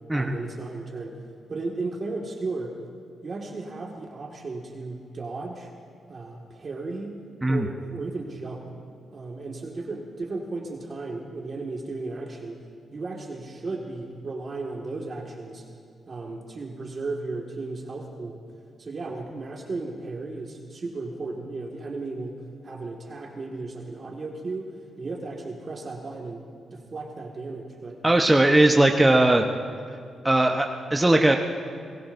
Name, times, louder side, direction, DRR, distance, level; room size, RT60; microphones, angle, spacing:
voice 1, 0.1-1.2 1.5-2.8 3.2-5.7 6.1-7.2 7.5-8.7 9.1-12.6 12.9-15.6 16.1-18.4 18.8-26.5 26.7-28.0, right 3 dB, 45° right, 0 dB, 1.9 m, -35 dB
voice 2, 28.0-29.5 30.2-31.4, right 1 dB, 15° right, 2 dB, 1.0 m, -19 dB
28.5 x 19.0 x 2.7 m, 2.3 s
cardioid pair, 65°, 0 cm